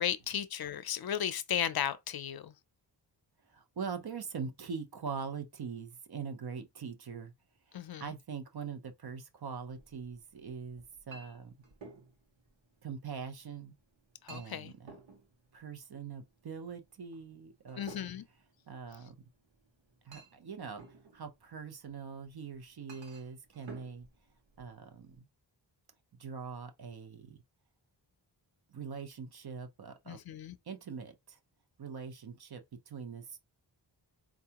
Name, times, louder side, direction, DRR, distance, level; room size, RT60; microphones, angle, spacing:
voice 1, 0.0-2.5 7.7-8.1 14.2-14.7 17.8-18.2 30.1-30.6, left 9 dB, 55° left, 0.5 m, -35 dB
voice 2, 3.5-7.3 7.7-11.5 12.8-13.7 14.3-14.9 15.5-18.1 18.7-19.3 20.0-24.1 24.6-25.3 26.1-27.4 28.7-30.2 30.6-31.4 31.8-33.4, right 6 dB, 55° right, 0.8 m, -43 dB
Chink clink, 9.6-25.2, right 4 dB, 85° right, 1.0 m, -56 dB
4.5 x 2.4 x 2.9 m
wide cardioid pair, 80°, 44 cm